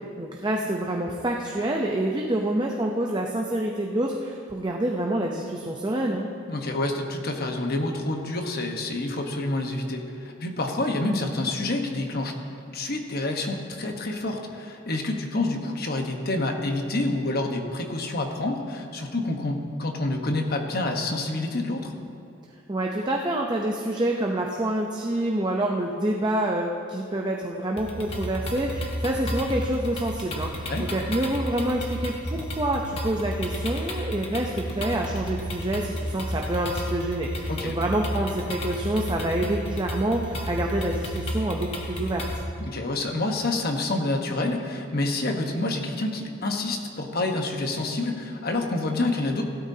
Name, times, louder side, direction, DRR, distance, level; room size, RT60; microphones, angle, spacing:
voice 1, 0.2-6.3 22.7-42.3, right 1 dB, 20° right, 0 dB, 0.6 m, -27 dB
voice 2, 6.5-12.4 12.7-21.9 30.7-30.9 37.5-37.7 42.6-49.4, left 2 dB, 50° left, 3 dB, 1.2 m, -28 dB
sound 1, 27.8-42.4, equal, 30° left, 1.2 m, -32 dB
16.5 x 12.5 x 2.8 m, 2.6 s
head